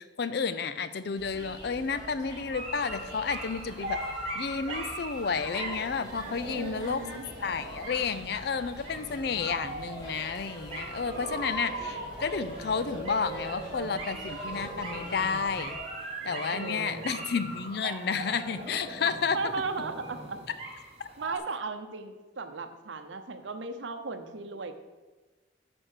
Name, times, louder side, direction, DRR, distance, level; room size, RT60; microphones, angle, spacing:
voice 1, 0.0-4.0 4.3-7.0 7.4-15.8 16.2-19.4 21.0-21.1, left 5 dB, 55° left, 13 dB, 0.4 m, -31 dB
sound 1, 1.1-15.8, equal, 20° left, 1.8 m, -46 dB
sound 2, 2.4-21.4, right 2 dB, 30° right, 1.6 m, -39 dB
voice 2, 6.4-7.3 16.5-17.3 19.3-20.4 21.2-24.7, right 3 dB, 70° right, 8 dB, 0.7 m, -36 dB
8.9 x 4.4 x 6.6 m, 1.2 s
head